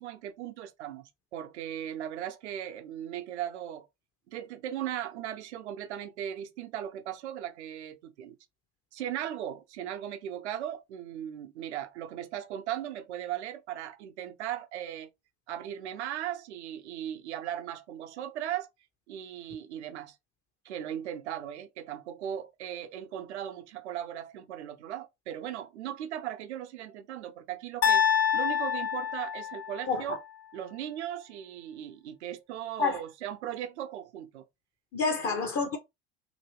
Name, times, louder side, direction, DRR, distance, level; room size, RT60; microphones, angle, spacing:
voice 1, 0.0-3.9 4.3-8.4 8.9-15.1 15.5-18.7 19.1-20.2 20.6-28.0 28.3-30.2 30.5-34.5 35.2-35.4, right 11 dB, 80° right, 0.6 m, -38 dB
sound 1, 27.8-30.0, left 8 dB, 75° left, 0.8 m, -27 dB
voice 2, 29.9-30.2 32.8-33.0 34.9-35.8, left 4 dB, 40° left, 0.8 m, -28 dB
2.8 x 2.7 x 3.1 m
hypercardioid pair, 70°, 34 cm